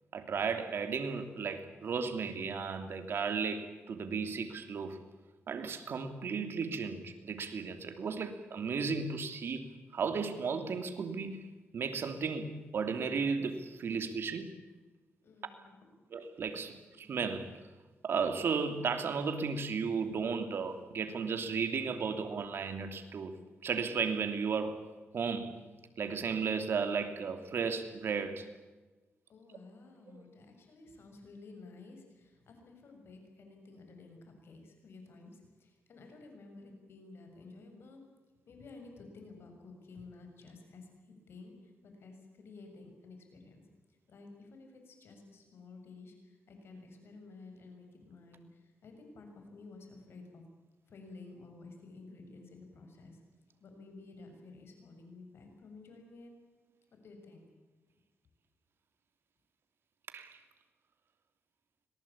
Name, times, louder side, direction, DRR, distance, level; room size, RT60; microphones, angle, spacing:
voice 1, 0.1-5.0 5.5-11.4 11.7-14.4 16.1-17.5 18.0-24.9 25.1-25.6 26.0-28.5 30.1-30.2 60.1-60.4, right 5 dB, 65° right, 8 dB, 2.9 m, -34 dB
voice 2, 15.2-16.1 29.3-38.0 38.5-50.5 50.9-53.2 53.6-56.3 57.0-57.5, left 3 dB, 70° left, 4 dB, 7.4 m, -53 dB
25.5 x 19.0 x 8.8 m, 1.2 s
cardioid pair, 80°, 4 cm